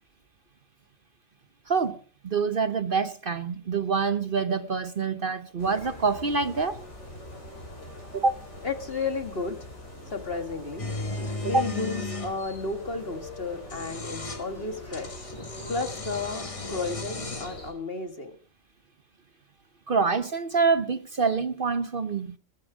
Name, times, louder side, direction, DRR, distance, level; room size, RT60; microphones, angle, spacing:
voice 1, 1.7-6.8 8.1-8.4 11.4-11.7 19.9-22.3, right 4 dB, 45° right, 1.0 m, -26 dB
sound 1, 5.6-17.7, left 1 dB, 60° left, 6.1 m, -43 dB
voice 2, 8.6-9.6 10.1-10.9 11.4-15.3 15.7-18.3, left 3 dB, 45° left, 2.2 m, -33 dB
sound 2, 10.8-12.4 13.5-14.5 14.9-17.6, left 3 dB, 25° left, 1.3 m, -35 dB
21.0 x 11.0 x 5.1 m
omnidirectional pair, 1.3 m